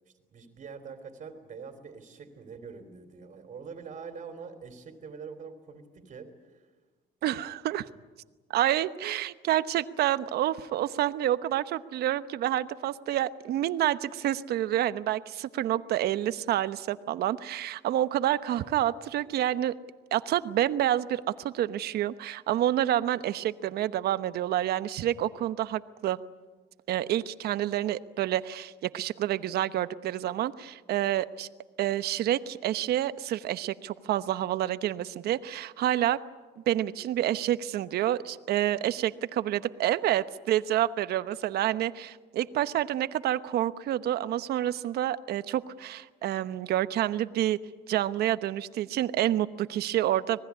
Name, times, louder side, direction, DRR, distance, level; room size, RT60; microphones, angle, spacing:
voice 1, 0.3-6.7, right 5 dB, 45° right, 4 dB, 3.3 m, -44 dB
voice 2, 7.2-7.9 8.5-19.7 20.1-26.2 26.9-31.5 31.8-36.2 36.7-47.6 47.9-50.4, right 12 dB, 70° right, 13 dB, 1.0 m, -28 dB
26.0 x 19.5 x 9.6 m, 1.3 s
cardioid pair, 110°, 17 cm